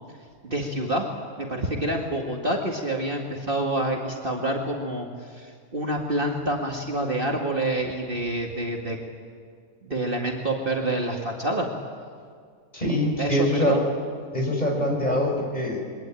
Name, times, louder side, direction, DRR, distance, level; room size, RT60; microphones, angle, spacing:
voice 1, 0.4-1.1 1.4-9.0 9.9-11.7 13.2-13.8, right 1 dB, 35° right, 0 dB, 2.2 m, -27 dB
voice 2, 12.7-13.8 14.3-15.8, left 1 dB, 25° left, 0 dB, 5.8 m, -24 dB
28.5 x 23.0 x 9.1 m, 2.1 s
omnidirectional pair, 1.6 m